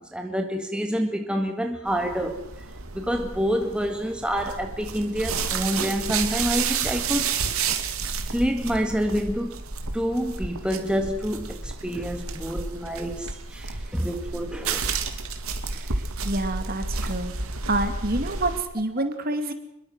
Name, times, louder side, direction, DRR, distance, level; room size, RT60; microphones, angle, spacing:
voice 1, 0.0-2.4 2.9-7.3 8.1-9.6 9.9-14.9, equal, 5° right, 1.8 m, -27 dB
sound 1, 1.9-18.6, right 5 dB, 80° right, 2.4 m, -31 dB
voice 2, 15.7-17.3 17.7-19.5, right 2 dB, 40° right, 2.5 m, -28 dB
25.5 x 22.5 x 6.3 m
head